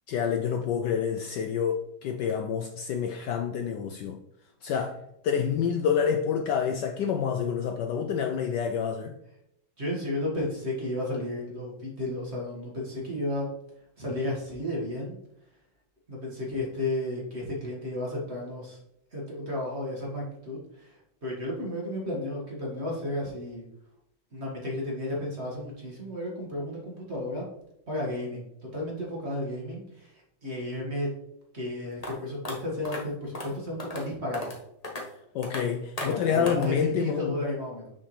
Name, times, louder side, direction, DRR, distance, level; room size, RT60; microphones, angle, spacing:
voice 1, 0.1-4.2 4.6-5.0 5.2-9.1 35.3-37.4, left 7 dB, 70° left, 1.1 m, -28 dB
voice 2, 9.8-13.5 14.0-15.2 16.1-18.8 19.1-23.6 24.3-27.5 27.9-31.1 31.5-34.4 36.0-37.9, left 1 dB, 35° right, 1.8 m, -33 dB
sound 1, 32.0-32.1 32.4-32.5 32.8-33.0 33.3-33.5 33.8-34.0 34.3-34.6 34.8-35.0 35.4-35.6 36.0-36.1 36.5-36.7, left 1 dB, 25° left, 1.0 m, -35 dB
6.6 x 6.0 x 3.2 m
omnidirectional pair, 2.2 m